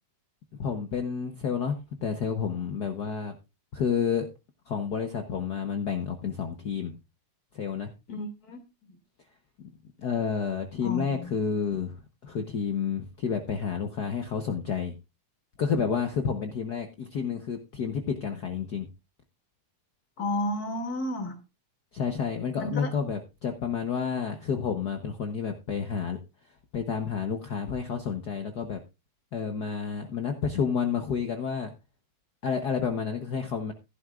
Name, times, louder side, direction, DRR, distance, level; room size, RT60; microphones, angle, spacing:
voice 1, 0.6-1.8 2.0-3.3 3.7-4.3 4.7-7.0 7.5-7.9 10.0-12.0 12.2-14.9 15.6-18.9 21.9-26.2 26.7-28.8 29.3-31.7 32.4-33.7, left 6 dB, 75° left, 0.9 m, -30 dB
voice 2, 8.1-8.6 10.8-11.3 20.2-21.4 22.6-22.9, left 1 dB, 30° left, 2.7 m, -32 dB
15.5 x 11.5 x 2.4 m
omnidirectional pair, 3.4 m